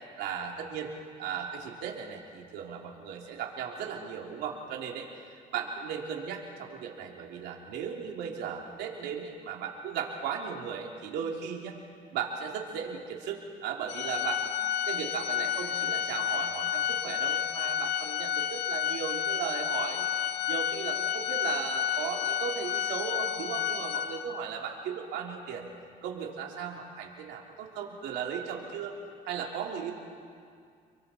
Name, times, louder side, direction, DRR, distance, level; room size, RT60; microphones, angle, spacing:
voice 1, 0.2-0.9 1.2-5.1 5.5-11.8 12.1-14.5 14.9-20.1 20.5-25.7 26.0-29.0 29.3-29.9, right 7 dB, 85° right, 0 dB, 3.1 m, -36 dB
Organ, 13.9-24.5, left 10 dB, 85° left, 1.0 m, -31 dB
29.5 x 23.5 x 4.4 m, 2.2 s
cardioid pair, 110°, 17 cm